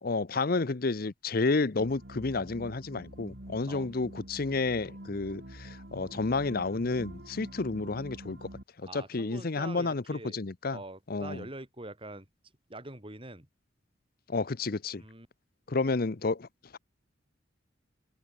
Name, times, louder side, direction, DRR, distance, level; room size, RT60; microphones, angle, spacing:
voice 1, 0.0-8.5 8.8-10.8 11.1-11.4 14.3-15.0 15.7-16.5, left 3 dB, 50° left, 0.7 m, -31 dB
sound 1, 1.8-8.6, right 1 dB, 60° right, 3.7 m, -46 dB
voice 2, 8.9-10.4 10.7-12.3 12.7-13.5 15.0-15.3, right 2 dB, 30° right, 4.6 m, -44 dB
open air
head